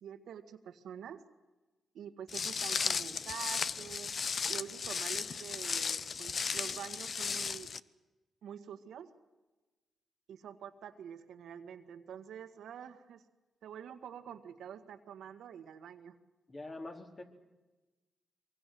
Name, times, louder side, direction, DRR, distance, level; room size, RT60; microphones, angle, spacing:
voice 1, 0.0-1.2 1.9-4.1 4.5-7.7 8.4-9.1 10.3-13.2 13.6-16.2, right 8 dB, 80° right, 8 dB, 1.8 m, -47 dB
Walk footsteps, 2.3-7.8, left 5 dB, 55° left, 0.8 m, -35 dB
voice 2, 16.5-17.2, left 2 dB, 35° left, 3 dB, 4.3 m, -44 dB
24.0 x 24.0 x 7.8 m, 1.2 s
cardioid pair, 70°, 0 cm